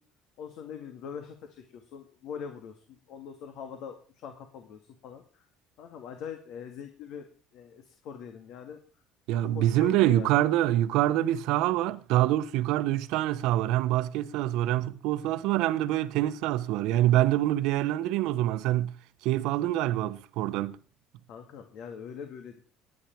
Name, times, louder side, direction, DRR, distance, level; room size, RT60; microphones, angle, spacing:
voice 1, 0.4-5.5 5.8-7.3 7.5-8.8 9.4-10.3 21.3-22.6, left 7 dB, 65° left, 2.1 m, -42 dB
voice 2, 9.3-19.0 19.2-20.8, right 14 dB, 80° right, 0.9 m, -25 dB
19.0 x 9.8 x 4.6 m
cardioid pair, 120°, 0 cm